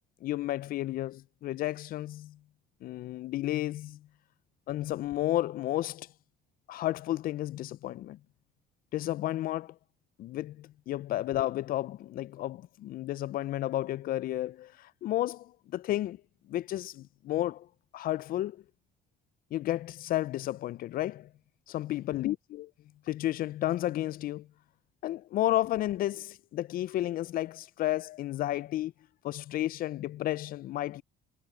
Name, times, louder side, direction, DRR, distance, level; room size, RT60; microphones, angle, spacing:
voice 1, 0.2-2.4 2.8-4.0 4.7-6.1 6.7-8.2 8.9-9.7 10.2-16.2 16.5-17.7 17.9-18.6 19.5-21.3 21.7-22.7 23.1-24.5 25.0-28.9 29.2-31.0, left 14 dB, 60° left, 0.4 m, -32 dB
cardioid pair, 110°, 17 cm